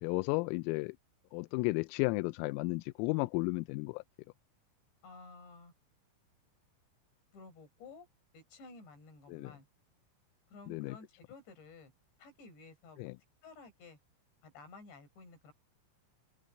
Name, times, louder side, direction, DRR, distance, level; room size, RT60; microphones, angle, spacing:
voice 1, 0.0-1.0 1.3-4.0 9.3-9.5 10.7-11.0 13.0-13.1, left 25 dB, 90° left, 3.3 m, -33 dB
voice 2, 5.0-5.7 7.3-8.1 8.3-9.7 10.5-11.9 12.2-13.1 13.4-14.0 14.4-15.5, left 3 dB, 55° left, 8.4 m, -53 dB
open air
omnidirectional pair, 6.0 m